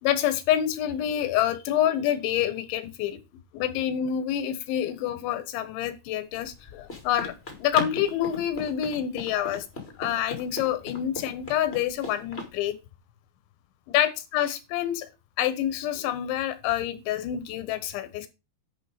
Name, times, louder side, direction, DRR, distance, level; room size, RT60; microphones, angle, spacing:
voice 1, 0.0-3.2 3.5-7.3 7.6-9.7 10.0-12.8 13.9-15.1 15.4-18.3, left 11 dB, 85° left, 11 dB, 3.6 m, -27 dB
Run, 6.3-12.5, left 3 dB, 20° left, 1.6 m, -39 dB
10.5 x 5.2 x 5.0 m, 0.26 s
omnidirectional pair, 5.2 m